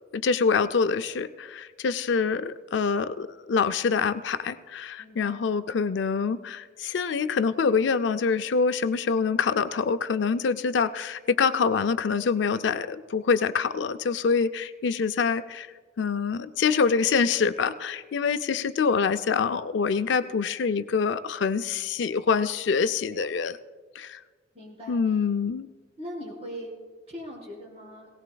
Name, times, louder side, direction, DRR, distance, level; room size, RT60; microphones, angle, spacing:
voice 1, 0.1-15.7 16.0-23.6 24.0-24.2 24.9-25.7, left 5 dB, 70° left, 11 dB, 0.4 m, -25 dB
voice 2, 5.0-5.5 24.5-25.2 26.0-26.8 27.1-28.1, equal, 35° right, -5 dB, 4.6 m, -40 dB
18.5 x 17.5 x 2.3 m, 1.5 s
head